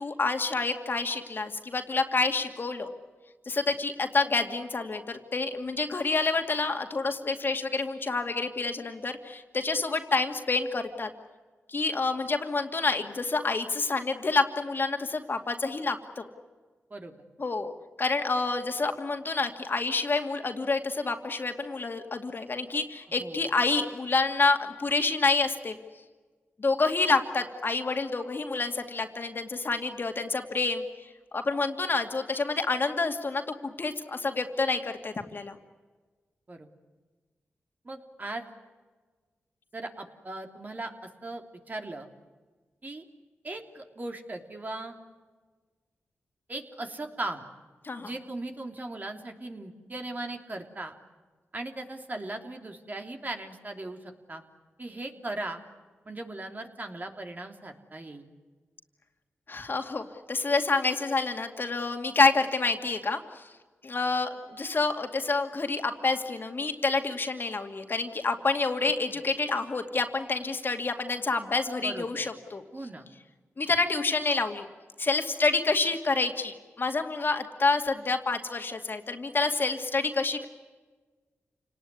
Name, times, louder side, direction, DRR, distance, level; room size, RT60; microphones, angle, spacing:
voice 1, 0.0-2.9 3.5-11.1 11.7-16.3 17.4-17.7 18.0-25.8 26.6-30.8 31.3-35.6 47.8-48.1 59.5-63.4 63.8-72.6 73.6-74.7 75.0-80.5, left 3 dB, 45° left, 5 dB, 2.5 m, -28 dB
voice 2, 23.1-23.4 36.5-36.7 37.8-38.4 39.7-42.1 42.8-43.0 43.4-45.0 46.5-47.4 48.0-50.9 51.5-54.4 54.8-55.6 56.0-58.3 71.8-72.2 72.7-73.0, right 2 dB, 35° right, 4 dB, 3.2 m, -38 dB
28.0 x 19.0 x 9.8 m, 1.4 s
cardioid pair, 60°, 5 cm